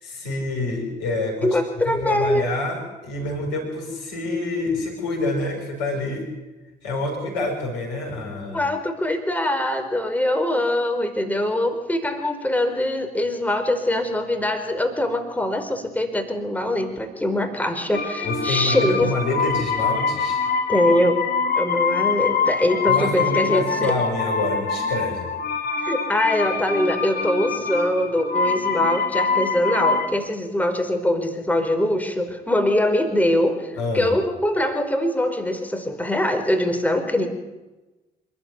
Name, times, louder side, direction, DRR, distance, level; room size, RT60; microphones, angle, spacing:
voice 1, 0.0-1.6 1.9-6.3 6.8-8.7 18.2-20.4 22.9-25.3 33.8-34.1, left 2 dB, 80° left, 2 dB, 5.8 m, -27 dB
voice 2, 1.4-2.4 8.5-19.1 20.7-21.2 21.6-23.9 25.8-37.3, left 1 dB, 5° left, 6 dB, 4.9 m, -23 dB
sound 1, 17.9-30.1, left 5 dB, 50° left, 4.0 m, -24 dB
26.5 x 12.5 x 9.7 m, 1.1 s
hypercardioid pair, 50°, 21 cm